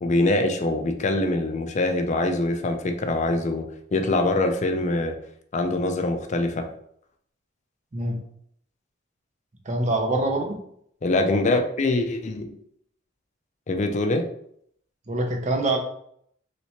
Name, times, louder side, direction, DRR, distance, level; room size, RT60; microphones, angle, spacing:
voice 1, 0.0-5.2 5.5-6.6 11.0-12.5 13.7-14.2, left 2 dB, 35° left, 6 dB, 0.4 m, -24 dB
voice 2, 9.7-10.6 15.1-15.8, right 2 dB, 35° right, 3 dB, 0.6 m, -24 dB
3.2 x 2.9 x 2.8 m, 0.68 s
head